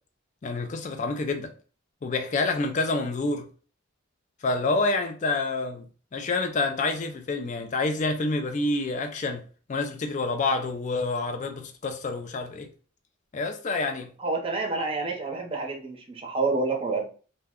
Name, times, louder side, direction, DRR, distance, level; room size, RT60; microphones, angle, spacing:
voice 1, 0.4-1.5 2.0-3.5 4.4-5.9 6.1-9.4 9.7-12.7 13.3-14.1, left 3 dB, 35° left, 0.3 m, -28 dB
voice 2, 14.2-17.1, right 3 dB, 25° right, 0.6 m, -28 dB
2.7 x 2.1 x 3.5 m
head